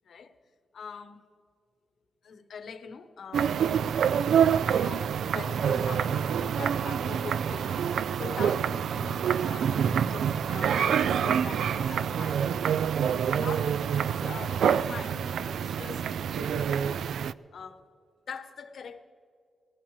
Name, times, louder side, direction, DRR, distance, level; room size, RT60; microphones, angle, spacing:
voice 1, 0.7-1.2 2.2-3.5 4.7-12.4 13.3-17.0 17.5-17.8 18.3-19.0, left 5 dB, 60° left, 9 dB, 0.9 m, -43 dB
sound 1, 3.3-17.3, right 8 dB, 90° right, 0.3 m, -27 dB
20.5 x 15.5 x 3.2 m, 2.2 s
wide cardioid pair, 160°, 0 cm